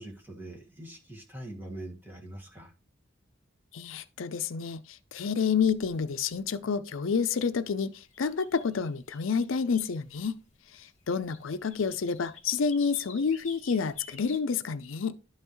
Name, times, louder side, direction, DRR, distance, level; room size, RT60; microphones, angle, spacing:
voice 1, 0.0-2.7, right 1 dB, 10° right, 1.7 m, -43 dB
voice 2, 3.7-10.4 10.8-15.1, left 6 dB, 80° left, 0.5 m, -29 dB
sound 1, 8.1-10.1 10.9-14.4, left 4 dB, 35° left, 1.8 m, -50 dB
11.5 x 5.5 x 3.1 m
head